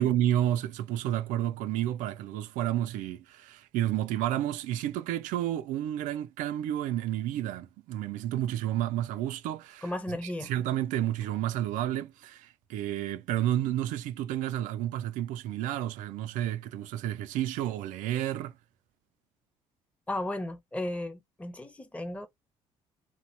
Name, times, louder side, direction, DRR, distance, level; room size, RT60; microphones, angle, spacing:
voice 1, 0.0-18.6, right 12 dB, 75° right, 0.4 m, -31 dB
voice 2, 9.8-10.5 20.1-22.3, left 1 dB, 10° left, 0.7 m, -35 dB
2.9 x 2.1 x 2.5 m
hypercardioid pair, 60°, 14 cm